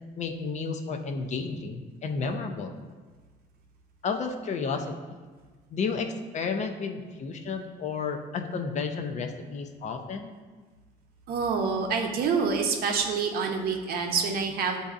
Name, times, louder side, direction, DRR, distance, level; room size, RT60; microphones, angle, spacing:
voice 1, 0.2-2.8 4.0-5.2 5.7-10.3, left 4 dB, 45° left, 5 dB, 0.5 m, -32 dB
voice 2, 11.3-14.9, right 5 dB, 65° right, 3 dB, 0.7 m, -27 dB
7.7 x 2.6 x 2.4 m, 1.4 s
cardioid pair, 110°, 17 cm